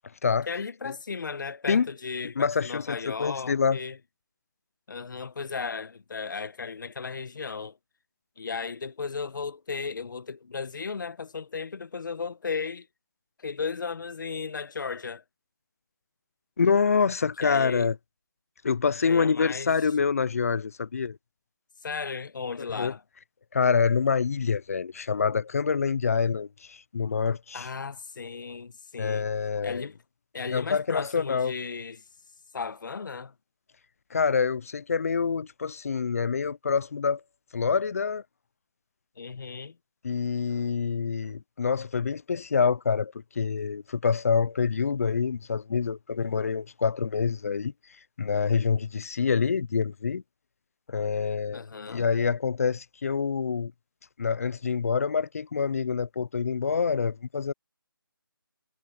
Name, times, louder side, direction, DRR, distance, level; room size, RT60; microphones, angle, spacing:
voice 1, 0.5-4.0 4.9-7.8 8.4-12.9 13.4-15.2 17.4-17.9 19.0-19.7 21.8-23.0 27.5-29.3 29.6-30.0 30.3-32.0 32.5-33.3 39.2-39.7 51.5-52.1, left 5 dB, 55° left, 1.3 m, -35 dB
voice 2, 2.4-3.8 16.6-18.0 18.6-21.2 22.6-22.9 23.5-27.7 29.0-29.9 30.5-31.5 34.1-37.2 37.5-38.2 40.0-47.7 48.2-50.2 50.9-51.6 51.9-53.7 54.2-57.5, left 5 dB, 40° left, 0.5 m, -26 dB
figure-of-eight pair, 165°, 12 cm